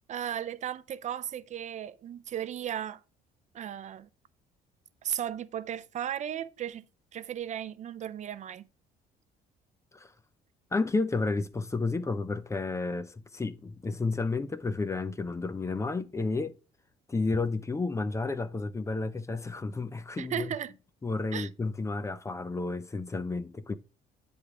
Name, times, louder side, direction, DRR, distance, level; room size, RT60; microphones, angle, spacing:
voice 1, 0.1-3.0 3.5-4.1 5.0-6.9 7.1-8.7 20.2-20.7 21.3-21.5, right 10 dB, 45° right, 0.4 m, -35 dB
voice 2, 10.7-16.6 17.1-20.6 21.0-23.8, left 3 dB, 15° left, 0.5 m, -31 dB
9.9 x 3.5 x 4.7 m
cardioid pair, 110°, 17 cm